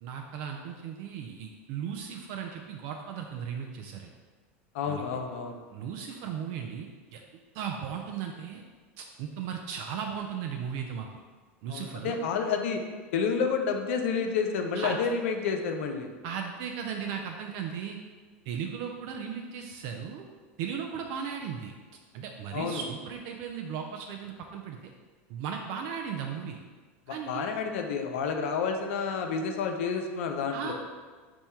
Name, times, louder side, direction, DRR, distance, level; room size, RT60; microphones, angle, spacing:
voice 1, 0.0-4.1 4.9-5.0 5.7-8.6 9.0-11.1 11.6-12.2 14.7-15.0 16.2-18.0 18.5-20.3 20.6-21.7 22.1-24.9 25.3-26.6 27.1-27.5 30.5-30.7, right 7 dB, 60° right, 3 dB, 0.4 m, -36 dB
voice 2, 4.7-5.6 11.7-12.8 13.1-16.1 22.5-22.8 27.1-30.7, left 5 dB, 75° left, 4 dB, 0.5 m, -30 dB
4.3 x 2.2 x 4.3 m, 1.4 s
hypercardioid pair, 95°, 7 cm